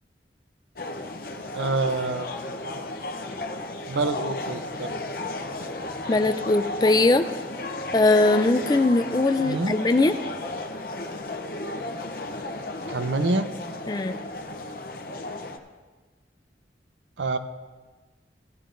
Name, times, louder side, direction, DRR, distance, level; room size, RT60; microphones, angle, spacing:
sound 1, 0.8-15.6, left 2 dB, 55° left, 0.7 m, -34 dB
voice 1, 1.5-2.3 3.9-4.9 9.4-9.8 12.9-13.5 17.2-17.4, right 3 dB, 85° right, 9 dB, 0.6 m, -26 dB
voice 2, 6.1-7.2 7.9-10.1 13.9-14.2, left 2 dB, 20° left, 9 dB, 0.3 m, -20 dB
16.0 x 11.0 x 2.6 m, 1.3 s
head